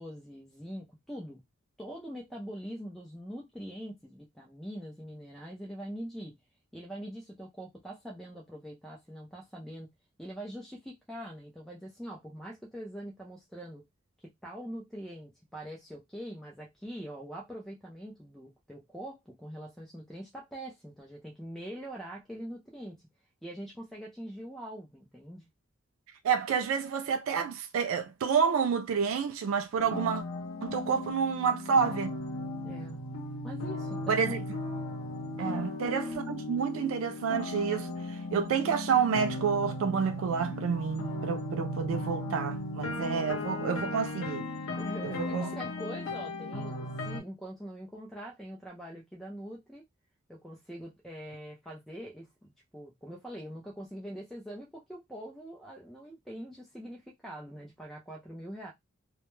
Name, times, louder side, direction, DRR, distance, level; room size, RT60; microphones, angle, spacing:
voice 1, 0.0-1.4 1.8-6.4 6.7-9.9 10.2-13.9 14.2-23.0 23.4-25.5 32.6-33.0 33.4-34.4 35.4-35.7 44.8-49.8 50.3-58.7, equal, ahead, 0.4 m, -43 dB
voice 2, 26.2-30.2 30.6-32.1 34.1-34.4 35.4-44.5 45.0-45.5, right 6 dB, 75° right, 0.3 m, -29 dB
sound 1, 29.8-47.2, left 2 dB, 75° left, 0.7 m, -36 dB
2.2 x 2.0 x 3.0 m
head